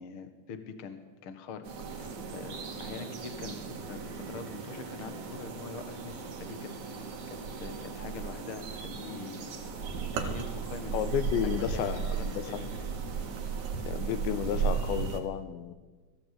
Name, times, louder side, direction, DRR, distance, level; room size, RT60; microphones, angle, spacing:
voice 1, 0.0-9.5 10.1-10.9 11.4-12.7, left 5 dB, 65° left, 9 dB, 1.3 m, -44 dB
sound 1, 1.6-15.2, right 6 dB, 50° right, 2.9 m, -36 dB
sound 2, 9.9-13.7, right 6 dB, 75° right, 3.8 m, -42 dB
voice 2, 10.9-12.6 13.9-15.7, left 10 dB, 85° left, 12 dB, 3.3 m, -32 dB
20.0 x 15.5 x 8.5 m, 1.3 s
omnidirectional pair, 5.1 m